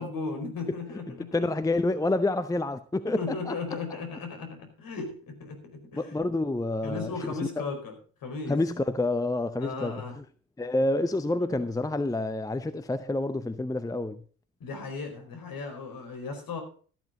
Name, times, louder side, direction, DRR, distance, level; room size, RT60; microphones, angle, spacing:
voice 1, 0.0-1.4 3.1-6.2 6.8-7.9 8.2-8.6 9.6-10.1 14.6-16.6, left 4 dB, 50° left, 4 dB, 4.8 m, -36 dB
voice 2, 1.1-3.5 5.9-7.6 8.5-10.2 10.6-14.2, left 2 dB, 10° left, 13 dB, 0.7 m, -28 dB
13.5 x 12.0 x 3.9 m, 0.41 s
figure-of-eight pair, 50°, 43 cm